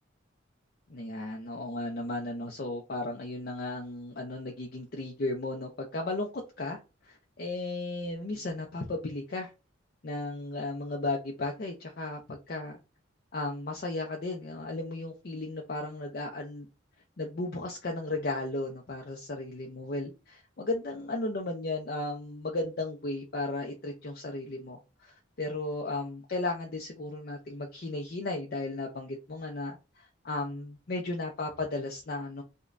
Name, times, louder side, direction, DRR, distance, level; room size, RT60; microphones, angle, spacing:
voice 1, 0.9-6.3 6.6-9.5 10.0-12.8 13.3-16.7 17.2-32.4, left 2 dB, 45° left, 0.5 m, -35 dB
5.1 x 2.2 x 2.5 m
head